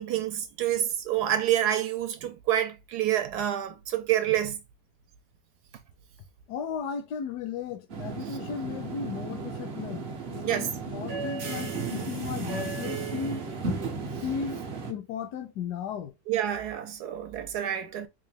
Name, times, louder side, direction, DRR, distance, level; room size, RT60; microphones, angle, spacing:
voice 1, 0.0-4.6 10.4-10.7 16.3-18.1, right 11 dB, 75° right, 1.1 m, -28 dB
voice 2, 6.5-13.4 14.2-14.6 14.9-16.1, left 7 dB, 75° left, 1.1 m, -35 dB
sound 1, 7.9-14.9, right 4 dB, 50° right, 0.7 m, -34 dB
3.7 x 2.5 x 3.3 m
omnidirectional pair, 1.9 m